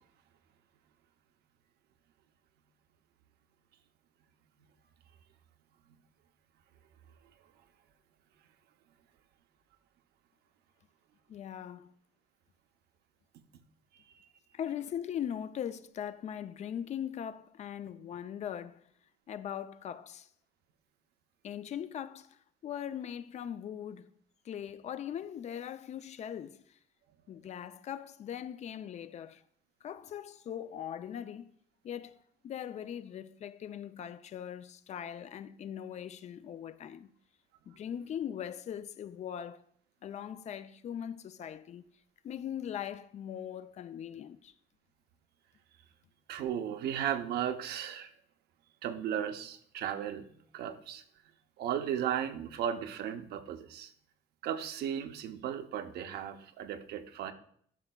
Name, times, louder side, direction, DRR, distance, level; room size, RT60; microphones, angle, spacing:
voice 1, 11.3-11.9 14.5-18.8 19.3-20.3 21.4-24.1 24.4-26.8 27.3-29.4 29.8-31.5 31.8-32.2 32.4-37.1 37.7-39.6 40.0-41.8 42.2-44.5, left 9 dB, 45° left, 0.4 m, -40 dB
voice 2, 46.3-48.1 48.8-50.2 50.5-51.0 51.6-53.9 54.4-57.3, right 9 dB, 70° right, 0.6 m, -35 dB
11.5 x 5.6 x 2.2 m
cardioid pair, 110°, 17 cm